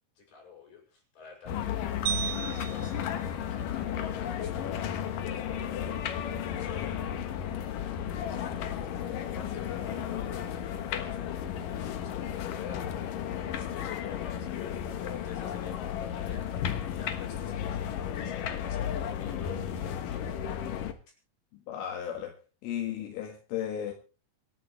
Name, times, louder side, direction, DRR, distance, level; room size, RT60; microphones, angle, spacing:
voice 1, 0.2-7.1 7.3-20.4, left 7 dB, 50° left, 8.6 m, -48 dB
sound 1, 1.5-20.9, left 9 dB, 70° left, 2.1 m, -34 dB
sound 2, 2.1-4.4, right 11 dB, 70° right, 3.1 m, -37 dB
voice 2, 21.5-22.4 22.6-23.9, left 10 dB, 85° left, 4.2 m, -35 dB
26.0 x 11.0 x 3.2 m
omnidirectional pair, 5.6 m